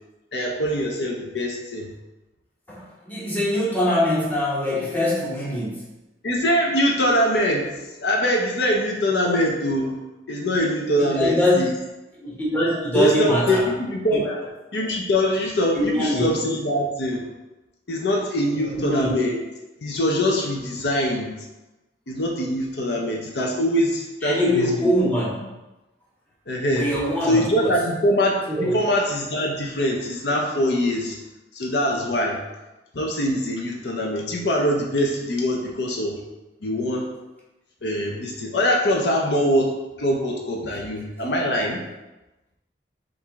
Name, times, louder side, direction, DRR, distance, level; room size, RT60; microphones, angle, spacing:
voice 1, 0.3-1.9 6.2-7.7 8.0-10.0 10.3-11.7 12.9-14.2 14.7-17.2 17.9-19.4 19.8-21.4 22.1-24.9 26.5-26.9 27.3-31.2 31.5-32.4 32.9-36.2 36.6-37.0 37.8-39.7 40.0-41.8, equal, 70° left, 0 dB, 0.6 m, -23 dB
voice 2, 2.7-5.8 11.0-11.7 12.2-13.6 14.2-14.3 15.7-16.3 18.7-19.1 24.2-25.4 26.7-27.7 28.5-28.8, equal, 10° left, -6 dB, 1.0 m, -23 dB
4.6 x 2.6 x 3.5 m, 1.0 s
head